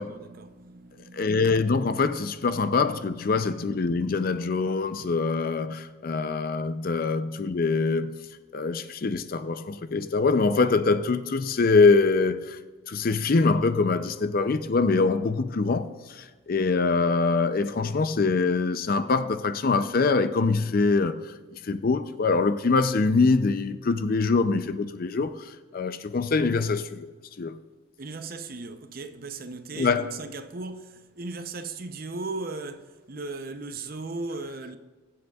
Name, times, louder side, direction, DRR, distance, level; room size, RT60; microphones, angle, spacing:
voice 1, 0.0-1.8 2.4-2.6 3.1-3.9 10.2-10.3 28.0-34.8, right 3 dB, 45° right, 0.6 m, -38 dB
voice 2, 1.1-8.1 8.5-12.6 12.9-21.3 21.6-27.1 27.4-27.5 29.7-30.1, left 4 dB, 45° left, 0.4 m, -24 dB
21.5 x 7.8 x 2.3 m
head